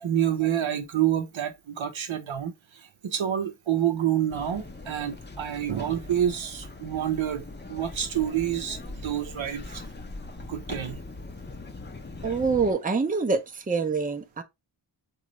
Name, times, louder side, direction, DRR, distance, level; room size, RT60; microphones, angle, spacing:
voice 1, 0.0-2.5 3.0-9.8 10.5-11.0, right 10 dB, 70° right, 0.7 m, -28 dB
sound 1, 4.3-12.7, left 2 dB, 20° left, 0.6 m, -41 dB
voice 2, 12.2-14.4, right 4 dB, 20° right, 0.6 m, -25 dB
3.9 x 2.4 x 3.0 m
cardioid pair, 40°, 49 cm